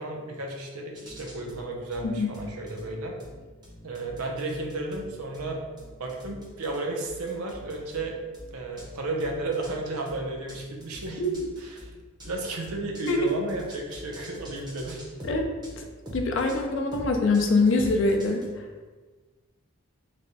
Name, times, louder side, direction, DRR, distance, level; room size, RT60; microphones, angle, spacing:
voice 1, 0.0-3.2 3.8-5.6 6.0-8.2 8.5-11.2 11.6-11.9 12.2-15.0, right 2 dB, 90° right, 1 dB, 0.6 m, -33 dB
sound 1, 0.9-18.5, equal, 20° right, 0.6 m, -44 dB
voice 2, 16.1-18.5, left 2 dB, 55° left, 3 dB, 0.4 m, -24 dB
3.3 x 2.2 x 3.9 m, 1.3 s
head